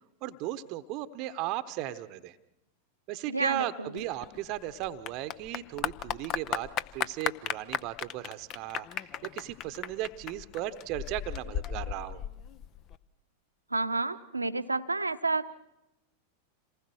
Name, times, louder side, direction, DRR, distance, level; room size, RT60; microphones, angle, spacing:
voice 1, 0.2-2.4 3.1-12.2, right 13 dB, 40° right, 12 dB, 1.0 m, -36 dB
voice 2, 3.3-4.0 13.7-15.5, right 3 dB, 80° right, 11 dB, 1.0 m, -30 dB
Clapping / Applause, 4.0-13.0, left 10 dB, 35° left, 0.8 m, -36 dB
27.5 x 19.5 x 6.3 m, 0.91 s
figure-of-eight pair, 90°, 0 cm